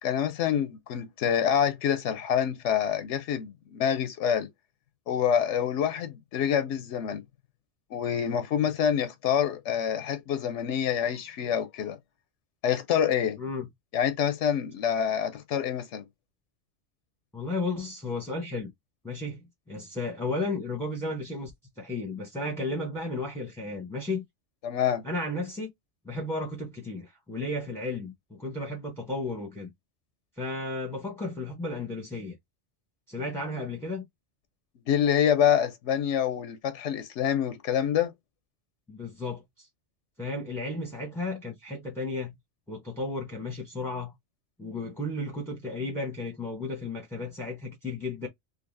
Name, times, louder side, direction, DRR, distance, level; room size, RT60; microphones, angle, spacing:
voice 1, 0.0-4.5 5.1-7.2 7.9-12.0 12.6-13.4 13.9-16.0 24.6-25.0 34.9-38.1, left 9 dB, 85° left, 0.9 m, -26 dB
voice 2, 13.4-13.7 17.3-18.7 19.0-19.4 19.7-21.5 21.8-24.2 25.0-25.7 26.0-29.7 30.4-32.4 33.1-34.1 38.9-39.7 40.2-42.4 42.7-44.1 44.6-48.3, left 2 dB, 5° left, 0.8 m, -33 dB
3.8 x 2.7 x 2.6 m
omnidirectional pair, 1.2 m